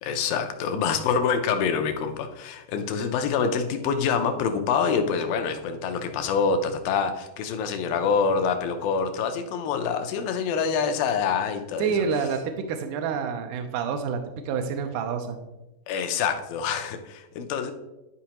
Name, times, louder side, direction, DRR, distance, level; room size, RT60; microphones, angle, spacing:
voice 1, 0.0-12.0 15.9-17.7, left 6 dB, 80° left, 6 dB, 2.3 m, -26 dB
voice 2, 11.8-14.2 14.5-15.4, right 6 dB, 80° right, 5 dB, 1.8 m, -28 dB
11.5 x 4.8 x 2.9 m, 0.99 s
omnidirectional pair, 4.2 m